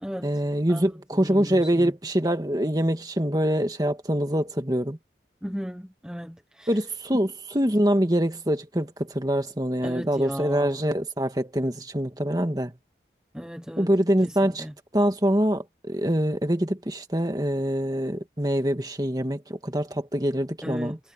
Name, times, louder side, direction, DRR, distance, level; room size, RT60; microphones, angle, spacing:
voice 1, 0.2-5.0 6.7-12.7 13.8-14.7 14.9-21.0, equal, 20° right, 2.1 m, -24 dB
voice 2, 1.2-1.9 5.4-6.7 9.8-10.8 13.3-13.9 14.2-14.3 14.6-14.7 20.6-21.0, equal, 5° right, 1.2 m, -35 dB
head